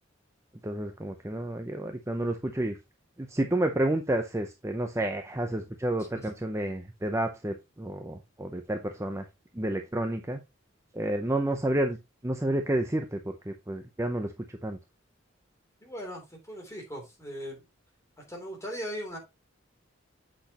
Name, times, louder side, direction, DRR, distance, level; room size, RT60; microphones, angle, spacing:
voice 1, 0.6-2.8 3.2-9.2 9.5-10.4 10.9-12.0 12.2-13.2 13.5-14.8, right 1 dB, 15° right, 0.6 m, -30 dB
voice 2, 15.8-17.6 18.3-19.2, equal, 15° left, 3.1 m, -39 dB
8.1 x 6.3 x 2.9 m
head